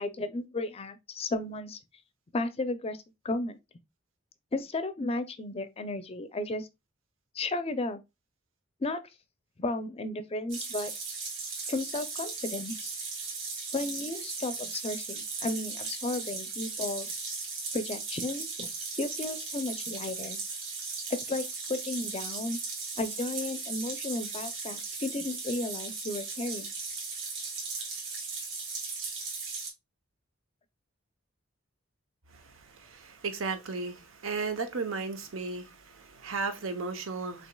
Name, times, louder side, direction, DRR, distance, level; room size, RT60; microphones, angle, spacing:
voice 1, 0.0-1.8 2.3-3.6 4.5-6.7 7.3-8.0 8.8-9.0 9.6-10.9 11.7-12.9 13.7-17.2 17.7-18.7 19.0-20.4 21.1-22.6 23.0-26.7, left 2 dB, 30° left, 0.5 m, -34 dB
sound 1, 10.5-29.7, right 4 dB, 65° right, 2.0 m, -37 dB
voice 2, 32.3-37.5, right 4 dB, 80° right, 0.8 m, -35 dB
6.1 x 2.9 x 2.2 m
head